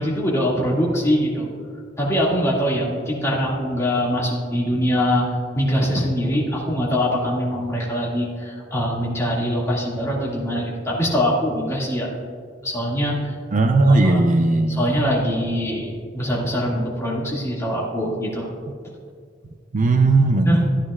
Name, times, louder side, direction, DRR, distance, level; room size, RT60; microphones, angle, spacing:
voice 1, 0.0-1.5 2.0-5.2 5.5-12.1 12.6-13.3 13.8-14.3 14.7-18.5 20.5-20.7, equal, 15° left, -5 dB, 2.2 m, -23 dB
voice 2, 13.5-14.8 19.7-20.7, right 2 dB, 45° right, 5 dB, 0.5 m, -17 dB
14.5 x 9.7 x 2.4 m, 2.1 s
head